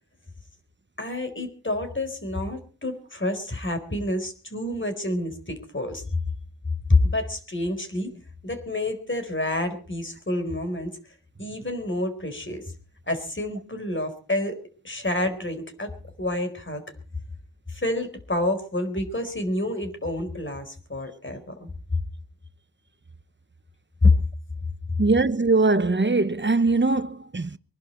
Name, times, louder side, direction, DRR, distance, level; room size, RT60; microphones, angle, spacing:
voice 1, 1.0-6.0 6.9-10.9 11.4-12.7 13.1-14.6 14.8-16.9 17.7-21.7 24.0-24.2, left 2 dB, 35° left, 4.4 m, -27 dB
voice 2, 25.0-27.6, right 3 dB, 35° right, 1.0 m, -21 dB
25.0 x 11.5 x 4.5 m
wide cardioid pair, 80°, 34 cm